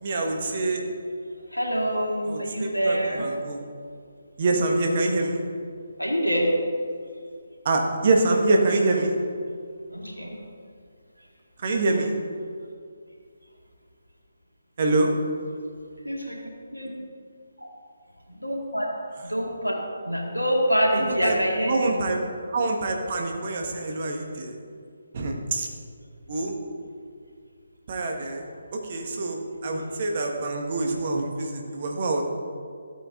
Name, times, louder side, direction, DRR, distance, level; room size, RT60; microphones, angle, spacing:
voice 1, 0.0-0.8 2.3-3.6 4.4-5.4 7.6-9.3 11.6-12.1 14.8-15.1 21.0-21.3 21.6-22.2 22.5-24.5 25.1-25.7 26.3-26.5 27.9-28.4 28.7-32.2, right 2 dB, 40° right, 2 dB, 1.4 m, -25 dB
voice 2, 1.5-3.3 6.0-6.5 9.9-10.4 16.0-16.4 16.7-16.9 17.6-17.7 18.3-18.9 19.2-19.8 20.0-22.0, equal, 90° left, -1 dB, 2.1 m, -26 dB
13.0 x 8.4 x 3.8 m, 2.2 s
figure-of-eight pair, 145°, 0 cm